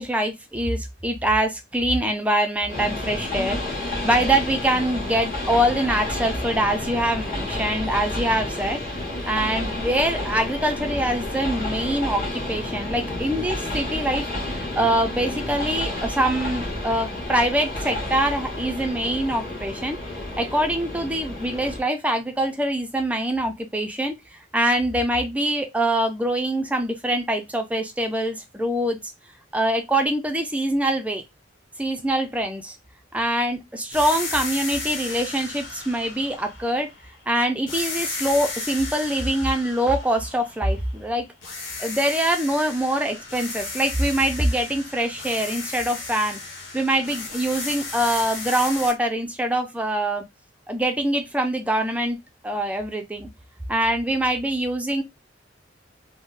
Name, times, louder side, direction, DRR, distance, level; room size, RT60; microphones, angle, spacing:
voice 1, 0.0-8.8 9.3-29.0 29.5-31.2 31.8-32.7 33.1-36.9 37.3-41.3 41.8-46.4 46.7-50.2 50.7-52.2 52.4-53.3 53.7-55.0, right 1 dB, 10° right, 0.5 m, -24 dB
Train, 2.7-21.8, left 1 dB, 45° left, 1.7 m, -30 dB
sound 1, 33.9-37.2 37.7-41.0 41.4-48.9, left 3 dB, 85° left, 1.2 m, -34 dB
3.7 x 2.1 x 2.5 m
head